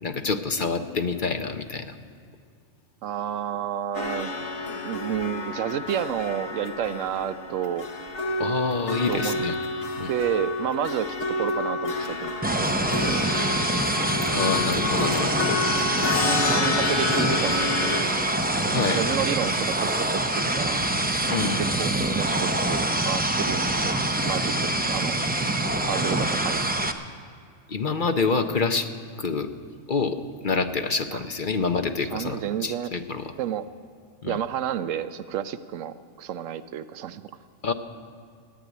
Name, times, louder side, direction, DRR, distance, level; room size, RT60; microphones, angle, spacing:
voice 1, 0.0-1.9 8.4-9.5 10.0-10.1 14.3-15.6 18.7-19.0 21.3-21.6 27.7-28.9 29.2-29.5 29.9-30.2 30.4-33.2 34.2-34.4 37.6-37.7, left 4 dB, 45° left, 7 dB, 0.9 m, -27 dB
voice 2, 3.0-4.3 4.7-7.9 9.1-9.4 10.1-13.3 15.4-18.3 18.9-20.1 20.3-20.8 21.8-25.1 25.8-26.8 31.1-31.2 32.0-32.9 33.4-33.7 34.2-37.3, right 9 dB, 80° right, 12 dB, 1.0 m, -31 dB
sound 1, 3.9-18.0, left 3 dB, 65° left, 1.6 m, -29 dB
sound 2, 12.4-26.9, right 1 dB, 10° right, 0.5 m, -25 dB
14.0 x 9.7 x 9.4 m, 2.3 s
omnidirectional pair, 1.3 m